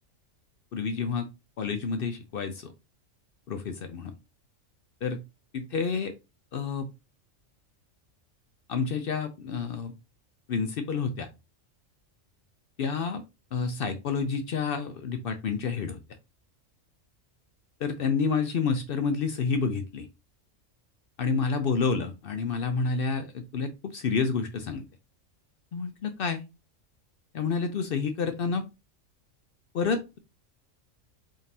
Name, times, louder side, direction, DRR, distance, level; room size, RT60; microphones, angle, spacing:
voice 1, 0.7-1.3 1.6-2.7 3.5-4.1 5.0-5.2 5.5-6.1 6.5-6.9 8.7-9.9 10.5-11.3 12.8-13.2 13.5-16.0 17.8-20.1 21.2-24.8 25.7-26.4 27.3-28.6 29.7-30.2, left 5 dB, 60° left, 7 dB, 0.6 m, -29 dB
3.7 x 3.6 x 2.7 m, 0.26 s
omnidirectional pair, 1.3 m